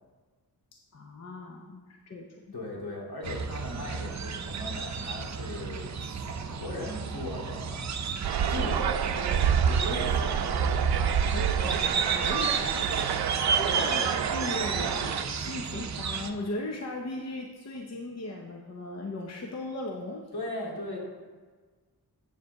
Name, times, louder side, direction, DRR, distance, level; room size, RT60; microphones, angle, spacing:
voice 1, 0.7-2.4 11.3-20.3, left 2 dB, 45° left, 1 dB, 0.8 m, -38 dB
voice 2, 2.5-5.9 6.2-7.9 8.5-9.4 9.6-10.9 13.7-13.9 20.3-21.0, left 2 dB, 80° left, -3 dB, 2.7 m, -38 dB
sound 1, 3.2-16.3, right 6 dB, 45° right, 0.6 m, -33 dB
sound 2, 8.2-15.2, right 7 dB, 90° right, 0.6 m, -27 dB
8.3 x 4.9 x 6.5 m, 1.4 s
wide cardioid pair, 135°, 37 cm